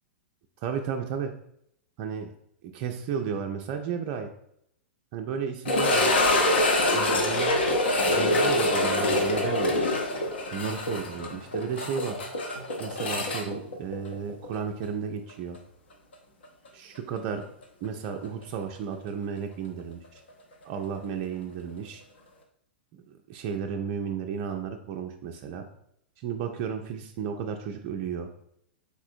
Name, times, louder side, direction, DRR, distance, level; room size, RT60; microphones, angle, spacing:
voice 1, 0.6-1.3 2.0-2.3 2.7-4.3 5.1-6.2 6.9-7.6 8.0-9.8 10.5-12.2 12.8-15.6 16.7-17.4 17.8-20.2 20.6-22.0 22.9-25.6 26.2-28.3, right 7 dB, 35° right, 4 dB, 0.3 m, -33 dB
sound 1, 5.6-14.6 14.8-14.9 15.5-15.6 18.2-18.3, left 1 dB, 65° left, 0.7 m, -25 dB
4.1 x 3.4 x 2.5 m, 0.72 s
figure-of-eight pair, 100°, 6 cm